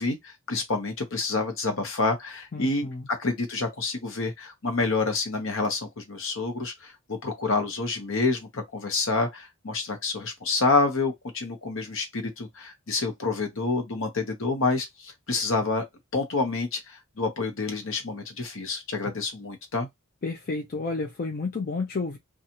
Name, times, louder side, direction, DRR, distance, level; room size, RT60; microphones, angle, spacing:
voice 1, 0.0-2.9 3.2-15.8 16.1-19.9, left 3 dB, 60° left, 0.9 m, -28 dB
voice 2, 2.5-3.1 20.2-22.2, left 3 dB, 40° left, 0.5 m, -31 dB
2.7 x 2.4 x 2.8 m
head